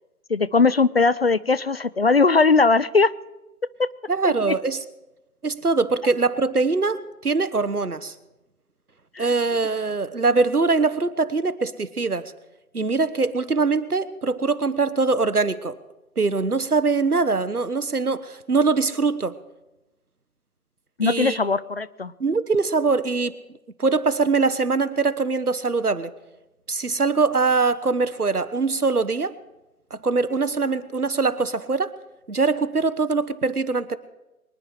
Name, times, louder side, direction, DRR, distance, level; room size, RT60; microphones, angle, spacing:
voice 1, 0.3-3.1 4.2-4.5 9.2-9.3 21.0-22.1, left 4 dB, 45° left, 18 dB, 0.4 m, -19 dB
voice 2, 4.1-4.8 5.4-8.1 9.2-12.3 12.7-15.8 16.2-19.4 21.0-21.4 22.2-23.3 23.8-26.1 26.7-29.3 29.9-31.9 32.3-34.0, right 4 dB, 90° right, 13 dB, 1.2 m, -22 dB
24.0 x 10.0 x 4.8 m, 1.0 s
figure-of-eight pair, 140°, 44 cm